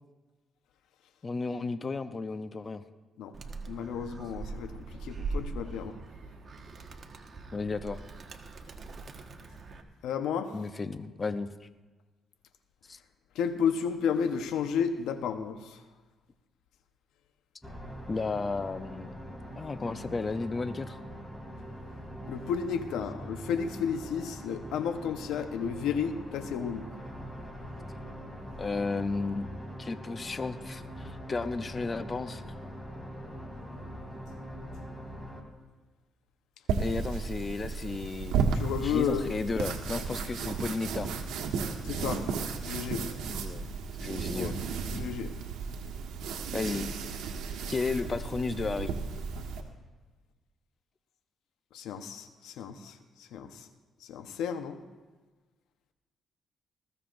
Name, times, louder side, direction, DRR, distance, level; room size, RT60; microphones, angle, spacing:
voice 1, 1.2-2.8 7.5-8.0 10.5-11.7 12.9-13.0 18.1-19.1 19.6-21.0 28.6-29.5 29.8-32.4 36.8-38.4 38.8-41.2 43.3-43.7 44.0-44.6 46.5-46.9 47.7-48.9, left 3 dB, 30° left, 11 dB, 0.6 m, -33 dB
Animal, 3.3-9.8, right 3 dB, 45° right, 1.4 m, -41 dB
voice 2, 3.7-4.7 5.0-6.0 10.0-10.5 13.3-15.8 22.3-26.9 33.5-34.1 34.6-34.7 35.3-35.4 38.5-39.3 41.8-42.3 42.6-43.0 44.2-44.5 44.9-45.3 51.7-53.7 54.1-54.8, left 7 dB, 85° left, 8 dB, 1.0 m, -32 dB
sound 1, 17.6-35.4, equal, 5° left, 2.6 m, -43 dB
sound 2, 36.7-49.6, right 5 dB, 85° right, 1.4 m, -34 dB
20.0 x 15.0 x 2.6 m, 1.3 s
cardioid pair, 90°, 0 cm